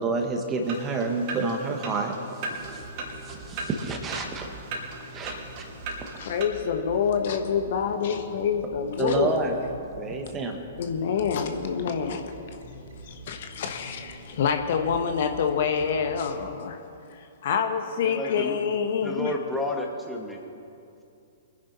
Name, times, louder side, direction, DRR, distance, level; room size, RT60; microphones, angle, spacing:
voice 1, 0.0-2.1 2.6-2.8 3.2-4.5 5.1-5.6 6.0-6.1 9.0-9.5 10.0-10.6, right 3 dB, 20° right, 3 dB, 1.8 m, -29 dB
sound 1, 0.6-6.4, right 3 dB, 40° right, 3.2 m, -38 dB
sound 2, 2.5-16.5, right 1 dB, 70° right, 4.6 m, -45 dB
voice 2, 6.2-9.3 10.8-12.3 13.1-16.8 17.1-19.3, left 7 dB, 55° left, 5 dB, 1.4 m, -27 dB
voice 3, 18.0-18.6 19.0-20.4, left 2 dB, 5° left, -1 dB, 2.1 m, -31 dB
24.5 x 10.5 x 4.3 m, 2.6 s
figure-of-eight pair, 115°, 0 cm